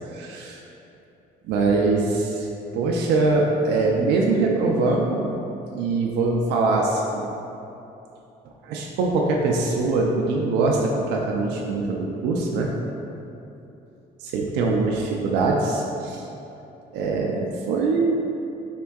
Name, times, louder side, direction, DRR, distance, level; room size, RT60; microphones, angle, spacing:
voice 1, 0.1-0.6 1.5-2.5 2.7-5.4 5.7-7.3 8.6-12.7 14.2-16.3 16.9-18.1, right 3 dB, 85° right, -1 dB, 0.4 m, -23 dB
4.3 x 3.6 x 2.3 m, 2.9 s
cardioid pair, 110°, 17 cm